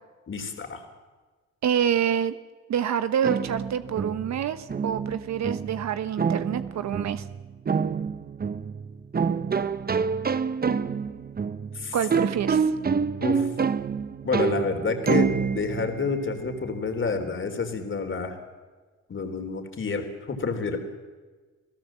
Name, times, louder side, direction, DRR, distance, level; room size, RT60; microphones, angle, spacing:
voice 1, 0.3-0.8 11.7-12.0 13.2-13.5 14.2-18.4 19.1-20.8, left 4 dB, 40° left, 5 dB, 3.8 m, -29 dB
voice 2, 1.6-2.4 2.7-7.2 11.9-12.7, right 9 dB, 65° right, 11 dB, 1.1 m, -27 dB
sound 1, 3.2-16.8, right 6 dB, 30° right, 1.1 m, -28 dB
29.5 x 17.5 x 7.6 m, 1.4 s
cardioid pair, 90°, 30 cm